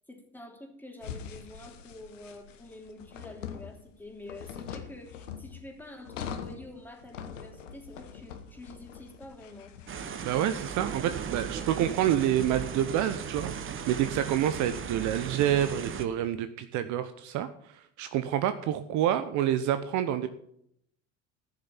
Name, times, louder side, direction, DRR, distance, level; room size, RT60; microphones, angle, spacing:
voice 1, 0.1-9.7, left 2 dB, 5° left, 1 dB, 3.1 m, -47 dB
sound 1, 1.0-14.7, left 7 dB, 75° left, 1.3 m, -44 dB
sound 2, 9.9-16.0, right 7 dB, 35° right, 1.3 m, -37 dB
voice 2, 10.2-13.5 13.9-17.5 18.0-20.3, right 11 dB, 50° right, 11 dB, 0.9 m, -28 dB
14.5 x 6.7 x 7.3 m, 0.72 s
figure-of-eight pair, 65°, 37 cm